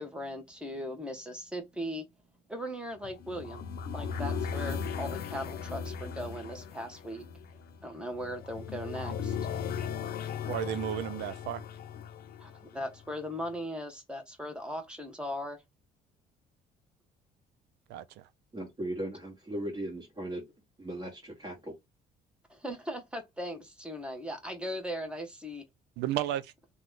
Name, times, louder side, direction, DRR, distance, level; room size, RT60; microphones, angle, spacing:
voice 1, 0.0-2.1 2.5-3.6 3.9-7.3 7.8-9.4 12.4-15.6 22.5-25.6, equal, 5° right, 1.1 m, -38 dB
sound 1, 3.0-13.1, left 7 dB, 65° left, 0.6 m, -37 dB
voice 2, 10.4-11.6 17.9-18.2 26.0-26.5, right 12 dB, 85° right, 0.5 m, -33 dB
voice 3, 18.5-20.5 20.8-21.7, right 1 dB, 25° right, 1.5 m, -37 dB
3.0 x 2.3 x 3.7 m
cardioid pair, 110°, 17 cm